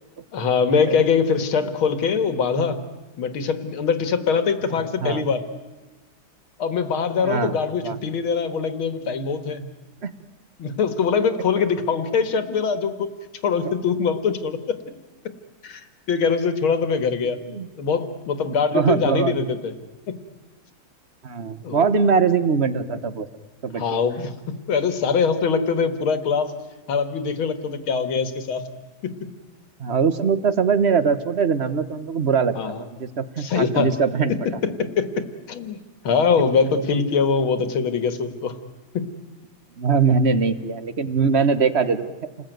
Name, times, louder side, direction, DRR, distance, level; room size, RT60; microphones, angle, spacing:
voice 1, 0.3-2.8 3.2-5.4 6.6-9.7 10.6-13.1 13.4-14.8 15.6-17.4 17.8-19.7 20.1-20.2 21.6-21.9 23.7-26.5 26.9-28.6 29.0-29.2 32.6-32.8 33.4-33.9 34.3-34.4 34.6-35.8 36.0-38.6 38.9-39.1, left 5 dB, 75° left, 10 dB, 2.5 m, -23 dB
voice 2, 4.7-5.2 7.2-7.6 7.8-8.0 10.0-10.1 17.4-17.7 18.7-19.4 21.2-23.3 23.6-24.1 29.8-32.5 32.8-34.3 39.8-42.1, right 5 dB, 40° right, 12 dB, 1.1 m, -22 dB
29.0 x 20.0 x 9.3 m, 1.2 s
omnidirectional pair, 2.3 m